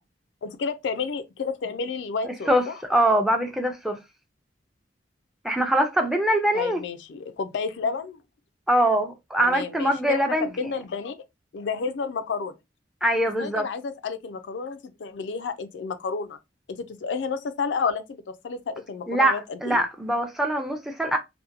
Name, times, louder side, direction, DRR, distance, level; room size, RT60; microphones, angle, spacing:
voice 1, 0.4-2.8 6.5-8.2 9.4-11.2 11.5-12.6 13.4-16.4 16.7-19.8, left 5 dB, 75° left, 0.4 m, -31 dB
voice 2, 2.9-4.0 5.4-6.8 8.7-10.5 13.0-13.7 19.1-21.2, right 1 dB, ahead, 0.4 m, -23 dB
2.8 x 2.1 x 2.4 m
head